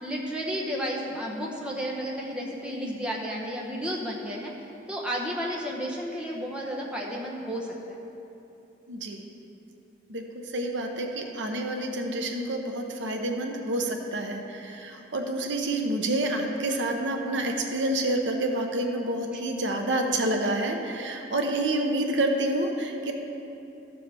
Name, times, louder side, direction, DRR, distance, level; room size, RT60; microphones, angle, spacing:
voice 1, 0.0-4.5 4.9-8.0 19.3-19.4, equal, 5° right, -3 dB, 0.9 m, -32 dB
voice 2, 8.9-9.2 10.1-10.2 10.5-23.1, right 1 dB, 80° right, 3 dB, 0.9 m, -28 dB
14.5 x 7.0 x 3.5 m, 2.8 s
head